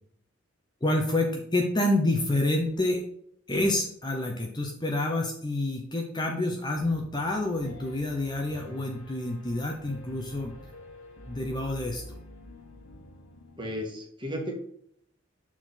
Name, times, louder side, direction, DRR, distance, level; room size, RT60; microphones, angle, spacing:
voice 1, 0.8-3.0 3.5-10.5 11.3-12.2, left 1 dB, 20° left, 1 dB, 0.8 m, -28 dB
Piano, 6.7-13.8, left 1 dB, 70° left, 1.4 m, -47 dB
voice 2, 13.6-14.6, equal, 20° right, -1 dB, 1.6 m, -34 dB
6.7 x 4.4 x 3.9 m, 0.68 s
head